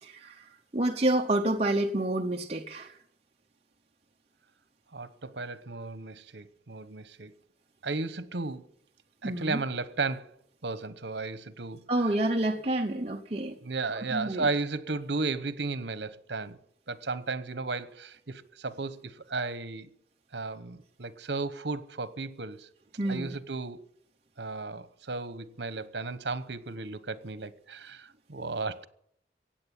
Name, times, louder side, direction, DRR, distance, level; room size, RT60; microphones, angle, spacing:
voice 1, 0.0-3.0 9.2-9.6 11.9-13.6 13.9-14.5 23.0-23.4, right 1 dB, 35° right, 0.8 m, -29 dB
voice 2, 4.9-7.3 7.8-8.7 9.2-10.3 10.6-11.8 13.6-16.6 16.9-19.9 20.3-22.7 23.1-23.8 24.4-28.9, right 3 dB, 75° right, 1.1 m, -34 dB
16.5 x 8.9 x 9.9 m
head